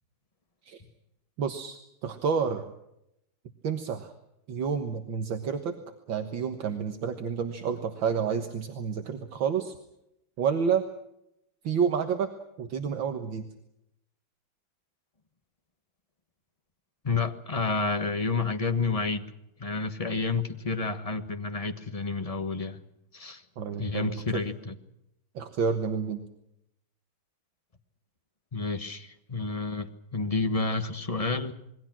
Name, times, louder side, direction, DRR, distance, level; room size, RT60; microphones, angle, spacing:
voice 1, 1.4-2.7 3.6-4.1 4.5-5.8 6.1-9.7 10.4-10.8 11.6-12.3 12.6-13.5 23.6-24.2 25.4-26.2, right 6 dB, 70° right, 6 dB, 2.1 m, -29 dB
voice 2, 17.0-19.2 19.6-22.8 23.1-23.4 23.8-24.7 28.5-31.5, left 3 dB, 20° left, 7 dB, 1.1 m, -30 dB
27.0 x 21.5 x 6.1 m, 0.82 s
omnidirectional pair, 2.3 m